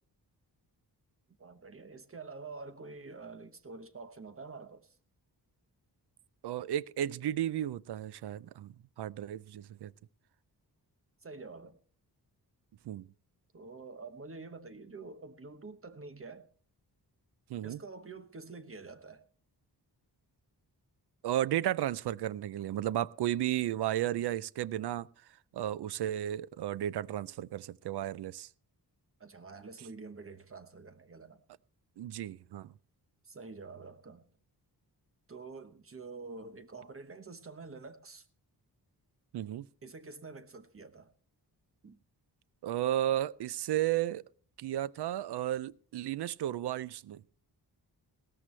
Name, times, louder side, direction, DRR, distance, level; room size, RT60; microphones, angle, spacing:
voice 1, 1.4-5.0 11.2-11.8 13.5-16.5 17.6-19.2 29.2-31.4 33.2-34.2 35.3-38.3 39.8-41.1 41.8-42.0, right 4 dB, 35° right, 1.0 m, -47 dB
voice 2, 6.4-9.9 12.9-13.1 17.5-17.8 21.2-25.1 25.5-28.5 32.0-32.7 39.3-39.7 42.6-44.2 44.6-47.2, right 12 dB, 75° right, 0.5 m, -33 dB
17.0 x 13.5 x 3.2 m
wide cardioid pair, 145°, 40 cm